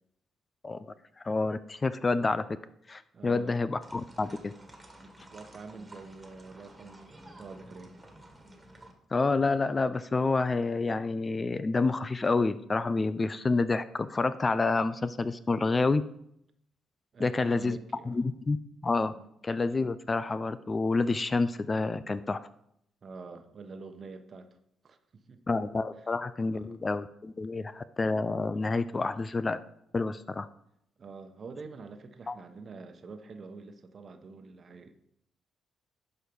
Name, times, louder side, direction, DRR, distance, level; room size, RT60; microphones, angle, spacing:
voice 1, 1.2-2.5 2.9-4.5 9.1-16.0 17.2-17.8 18.1-18.6 18.8-19.1 19.4-22.4 25.5-29.6 29.9-30.5 32.3-32.4, left 3 dB, 30° left, 14 dB, 0.4 m, -28 dB
voice 2, 3.1-3.6 5.0-7.9 17.1-18.3 19.1-19.3 23.0-24.5 24.8-25.4 26.4-26.8 31.0-34.9, right 4 dB, 45° right, 7 dB, 1.1 m, -46 dB
sound 1, 3.8-8.9, right 1 dB, 15° right, 1.7 m, -52 dB
11.5 x 4.6 x 5.4 m, 0.73 s
cardioid pair, 90°, 0 cm